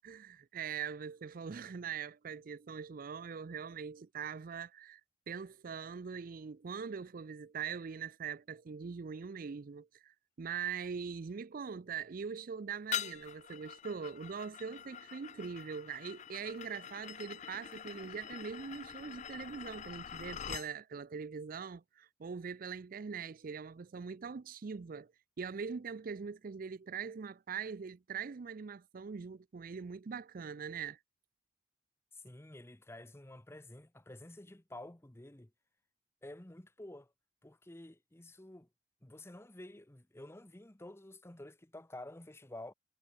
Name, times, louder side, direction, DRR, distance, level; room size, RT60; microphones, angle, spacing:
voice 1, 0.0-5.0 5.3-25.1 25.4-31.0, right 6 dB, 50° right, 0.4 m, -42 dB
sound 1, 12.9-20.7, left 9 dB, 40° left, 0.5 m, -44 dB
voice 2, 32.1-35.5 36.2-37.1 37.4-38.7 39.0-42.7, left 1 dB, 15° left, 0.8 m, -50 dB
head